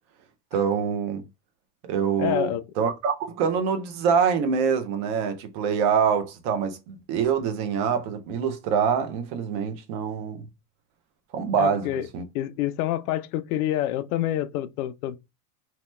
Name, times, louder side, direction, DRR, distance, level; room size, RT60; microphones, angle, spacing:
voice 1, 0.5-1.2 1.9-10.4 11.3-11.9 12.1-12.2, right 6 dB, 45° right, 0.6 m, -25 dB
voice 2, 2.2-2.6 11.6-12.1 12.3-15.2, left 13 dB, 75° left, 0.5 m, -27 dB
2.8 x 2.2 x 3.1 m
supercardioid pair, 170°, 44 cm